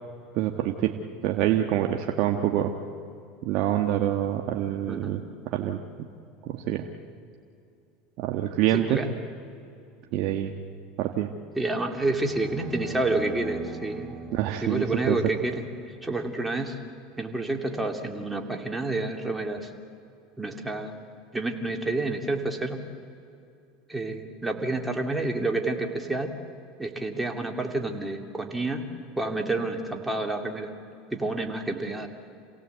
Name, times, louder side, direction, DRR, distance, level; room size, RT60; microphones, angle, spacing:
voice 1, 0.3-2.8 3.4-6.1 6.4-6.9 8.2-9.0 10.1-10.5 11.0-11.3 14.3-15.2, right 12 dB, 60° right, 4 dB, 1.3 m, -26 dB
voice 2, 8.7-9.1 11.6-14.2 14.6-15.6 16.0-16.8 17.2-19.7 20.4-21.0 21.3-22.8 23.9-26.3 26.8-28.8 29.2-30.7 31.1-32.1, right 2 dB, 10° right, 3 dB, 2.5 m, -29 dB
sound 1, 12.0-16.2, right 5 dB, 40° right, 3.2 m, -42 dB
28.0 x 17.5 x 8.1 m, 2.6 s
supercardioid pair, 110°, 0 cm